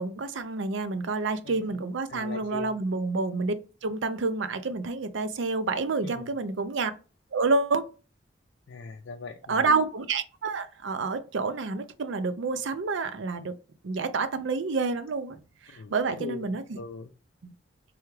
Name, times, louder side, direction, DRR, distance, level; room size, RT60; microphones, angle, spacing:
voice 1, 0.0-3.5 3.8-6.9 7.3-7.9 9.5-13.6 13.8-16.6 17.4-17.5, right 3 dB, 75° right, 0.5 m, -28 dB
voice 2, 2.1-2.7 6.0-6.3 8.7-9.7 15.7-17.1, left 4 dB, 80° left, 0.4 m, -41 dB
3.4 x 3.4 x 3.2 m
head